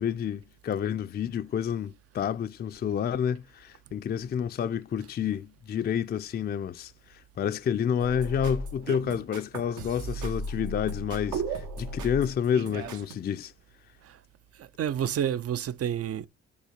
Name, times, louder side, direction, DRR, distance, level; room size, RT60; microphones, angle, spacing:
voice 1, 0.0-13.5, left 8 dB, 35° left, 0.4 m, -29 dB
sound 1, 8.0-13.1, right 3 dB, 80° right, 1.5 m, -36 dB
voice 2, 14.6-16.3, right 9 dB, 50° right, 0.6 m, -30 dB
5.5 x 4.0 x 5.0 m
cardioid pair, 90°, 30 cm